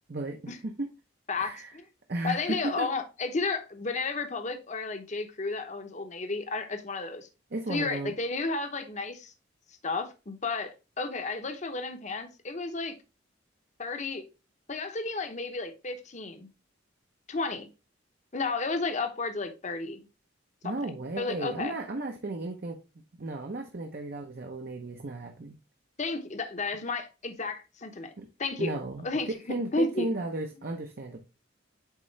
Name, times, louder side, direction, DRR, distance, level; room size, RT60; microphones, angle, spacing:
voice 1, 0.1-0.9 1.4-1.7 2.1-2.9 7.5-8.1 20.6-22.8 23.2-25.6 28.2-28.3 28.6-29.0 29.5-31.2, right 2 dB, 50° right, 0.7 m, -34 dB
voice 2, 1.3-1.8 2.2-7.3 7.7-9.3 9.8-12.9 13.8-14.2 14.7-16.5 17.3-17.7 18.3-20.0 20.6-20.7 21.2-21.7 26.0-28.1 28.4-29.4 29.7-30.1, left 3 dB, 40° left, 0.8 m, -32 dB
8.3 x 3.7 x 3.2 m
head